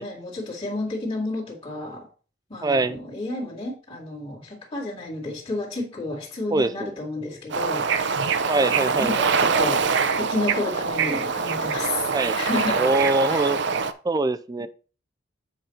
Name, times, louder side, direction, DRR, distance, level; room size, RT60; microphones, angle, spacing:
voice 1, 0.0-2.1 2.5-8.2 8.6-9.8 10.2-12.0 12.4-12.8 13.3-13.5, left 2 dB, 30° left, 2.2 m, -31 dB
voice 2, 2.6-3.0 6.5-6.9 8.5-9.2 12.1-12.4 12.7-13.6 14.0-14.7, right 2 dB, 20° right, 0.4 m, -23 dB
Bird / Ocean, 7.5-13.9, right 5 dB, 65° right, 0.6 m, -24 dB
8.0 x 5.2 x 4.3 m
head